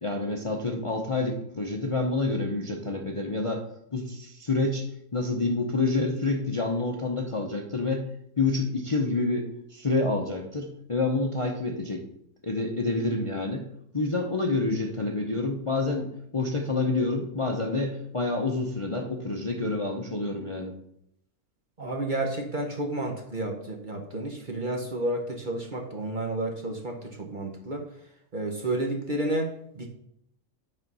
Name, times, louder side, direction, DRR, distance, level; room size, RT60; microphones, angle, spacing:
voice 1, 0.0-3.6 3.9-4.9 5.1-8.0 8.4-12.0 12.4-13.6 13.9-20.7, left 3 dB, 30° left, 1 dB, 0.7 m, -28 dB
voice 2, 21.8-27.9 28.3-29.9, right 1 dB, 35° right, 2 dB, 1.0 m, -31 dB
8.9 x 4.3 x 5.4 m, 0.74 s
omnidirectional pair, 1.6 m